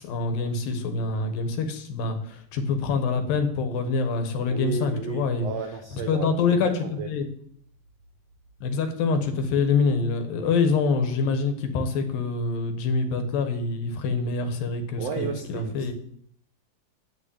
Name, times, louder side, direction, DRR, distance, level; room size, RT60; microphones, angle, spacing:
voice 1, 0.0-5.5 6.1-7.3 8.6-15.9, left 4 dB, 80° left, 7 dB, 3.1 m, -25 dB
voice 2, 4.5-6.3 6.8-7.1 15.0-15.9, right 6 dB, 75° right, 5 dB, 1.5 m, -33 dB
9.1 x 6.5 x 8.6 m, 0.66 s
omnidirectional pair, 4.1 m